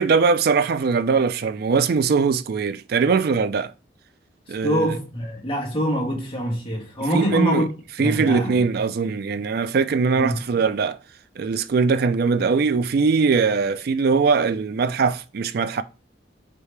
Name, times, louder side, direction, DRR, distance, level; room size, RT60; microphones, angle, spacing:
voice 1, 0.0-3.7 4.5-4.9 7.1-7.6 8.0-11.0 11.4-15.8, right 5 dB, 55° right, 0.4 m, -21 dB
voice 2, 4.5-7.7 8.0-8.7 10.2-10.6, equal, 30° left, 1.4 m, -25 dB
4.7 x 2.8 x 3.2 m
head